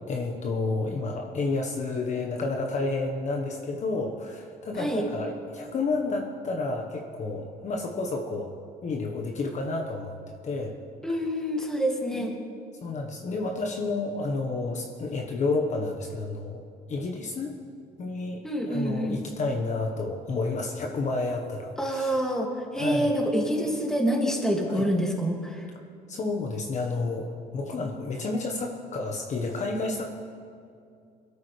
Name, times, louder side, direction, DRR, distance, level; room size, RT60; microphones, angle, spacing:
voice 1, 0.0-8.5 8.8-10.2 10.4-10.8 12.1-12.3 12.8-16.6 16.9-17.5 18.0-22.2 22.8-23.1 24.7-24.9 26.1-30.3, left 3 dB, 45° left, 2 dB, 1.3 m, -30 dB
voice 2, 11.0-12.3 18.4-19.2 21.8-25.7, equal, 5° left, 0 dB, 2.4 m, -27 dB
21.5 x 13.0 x 3.4 m, 2.4 s
cardioid pair, 110°, 17 cm